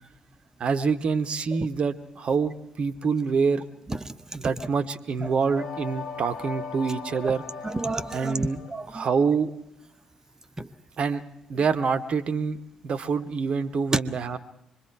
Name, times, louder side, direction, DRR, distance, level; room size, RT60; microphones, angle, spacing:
voice 1, 0.6-3.7 4.4-7.4 8.1-8.6 8.9-9.5 11.0-11.2 11.5-14.4, right 5 dB, 45° right, 11 dB, 1.1 m, -26 dB
voice 2, 3.9-4.5 5.2-5.3 7.2-7.3 7.6-9.1 10.6-10.7, right 2 dB, 20° right, 10 dB, 1.1 m, -32 dB
sound 1, 5.5-9.2, left 5 dB, 50° left, 3.0 m, -39 dB
25.0 x 22.0 x 4.7 m, 0.79 s
figure-of-eight pair, 45°, 3 cm